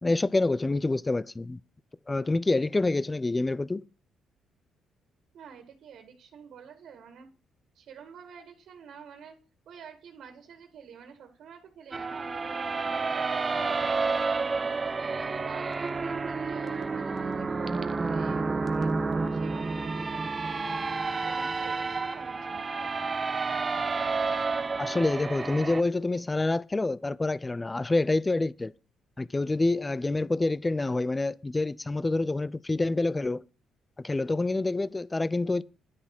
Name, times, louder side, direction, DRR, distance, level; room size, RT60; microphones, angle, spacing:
voice 1, 0.0-1.6 2.1-3.8 24.8-28.7 29.2-33.4 34.0-35.6, left 2 dB, 20° left, 0.5 m, -27 dB
voice 2, 5.3-7.3 7.7-9.4 9.7-13.8 14.2-18.9 19.3-20.9 21.2-23.1, right 7 dB, 70° right, 2.0 m, -48 dB
sound 1, 11.9-25.8, right 4 dB, 30° right, 0.9 m, -30 dB
10.5 x 9.6 x 6.0 m
cardioid pair, 90°, 0 cm